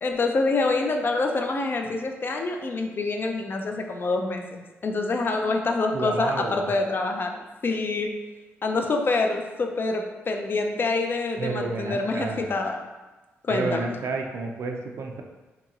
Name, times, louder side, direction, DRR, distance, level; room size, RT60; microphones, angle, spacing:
voice 1, 0.0-7.3 7.6-8.2 8.6-12.8 13.4-13.9, left 3 dB, 45° left, 3 dB, 0.4 m, -26 dB
voice 2, 5.9-6.7 11.4-12.5 13.5-15.2, right 3 dB, 60° right, 2 dB, 0.4 m, -30 dB
2.8 x 2.8 x 2.4 m, 1.2 s
cardioid pair, 60°, 5 cm